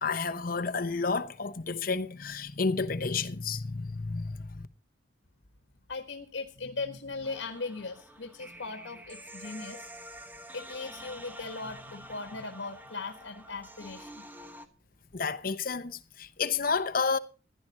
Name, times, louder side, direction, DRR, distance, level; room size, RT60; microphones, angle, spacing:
voice 1, 0.0-4.7 15.1-17.2, left 4 dB, 50° left, 0.9 m, -31 dB
voice 2, 5.9-9.9 10.5-14.2, left 3 dB, 80° left, 1.5 m, -39 dB
sound 1, 7.2-14.7, equal, 10° right, 1.2 m, -47 dB
15.5 x 11.0 x 4.2 m
head